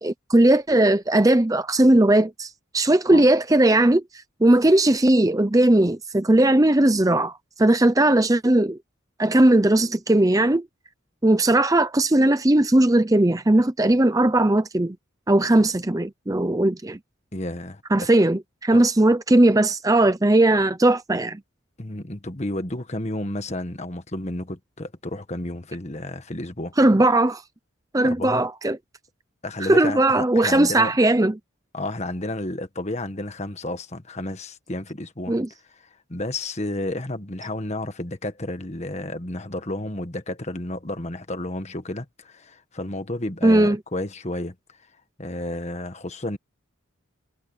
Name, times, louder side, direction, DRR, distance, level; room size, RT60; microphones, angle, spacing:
voice 1, 0.0-4.0 4.4-8.8 9.2-10.7 11.2-15.0 15.3-17.0 17.9-21.4 26.8-27.4 27.9-28.8 29.7-31.3 35.3-35.5 43.4-43.8, right 1 dB, 15° right, 0.7 m, -18 dB
voice 2, 17.3-18.1 18.7-18.8 21.8-26.7 28.0-28.5 29.4-30.9 31.7-35.3 36.1-44.5 45.2-46.4, left 1 dB, 35° left, 1.5 m, -31 dB
head